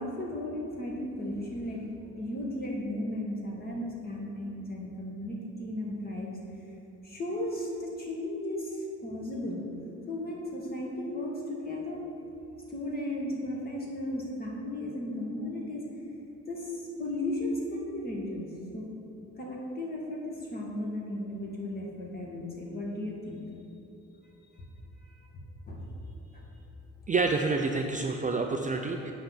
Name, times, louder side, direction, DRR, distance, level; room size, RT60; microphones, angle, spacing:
voice 1, 0.0-6.4 7.0-9.6 10.1-12.0 12.7-15.8 16.1-16.2 16.5-18.9 19.4-23.4 24.6-24.7 25.0-25.3 25.7-25.9 26.3-26.5, left 1 dB, 30° left, -2 dB, 1.8 m, -35 dB
voice 2, 27.1-29.1, right 3 dB, 25° right, 3 dB, 0.5 m, -28 dB
8.6 x 4.0 x 6.0 m, 2.8 s
cardioid pair, 90°, 30 cm